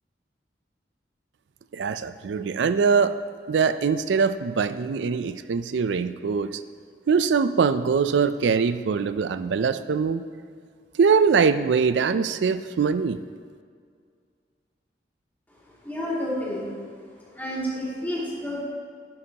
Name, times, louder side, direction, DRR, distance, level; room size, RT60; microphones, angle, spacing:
voice 1, 1.7-3.1 3.5-6.6 7.1-10.2 11.0-13.2, right 5 dB, 90° right, 12 dB, 0.4 m, -22 dB
voice 2, 15.7-17.0 17.3-18.6, equal, 10° left, -7 dB, 2.4 m, -30 dB
11.5 x 9.6 x 2.9 m, 2.1 s
head